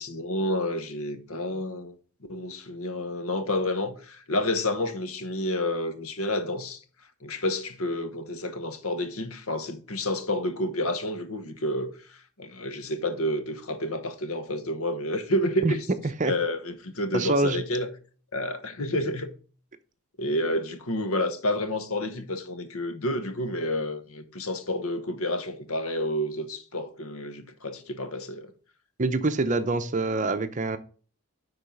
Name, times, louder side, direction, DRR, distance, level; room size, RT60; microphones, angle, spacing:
voice 1, 0.0-2.0 2.3-6.8 7.2-15.8 16.2-17.9 18.3-19.3 20.2-28.5, left 1 dB, 75° left, 1.2 m, -29 dB
voice 2, 17.1-17.6 29.0-30.8, right 2 dB, 35° right, 0.6 m, -25 dB
10.5 x 4.0 x 5.2 m
head